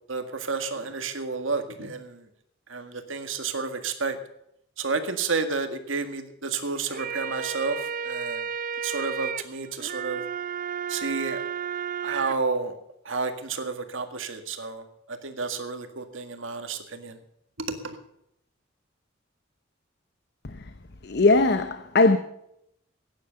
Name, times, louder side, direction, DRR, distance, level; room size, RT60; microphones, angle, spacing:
voice 1, 0.1-2.2 2.7-4.2 4.8-7.8 8.0-8.4 8.8-10.2 10.9-11.4 12.0-12.7 13.1-14.8 15.2-17.2, right 4 dB, 80° right, 1.8 m, -30 dB
sound 1, 6.8-12.3, right 7 dB, 45° right, 0.6 m, -33 dB
voice 2, 21.0-22.2, left 3 dB, 55° left, 0.9 m, -19 dB
15.5 x 10.0 x 6.7 m
head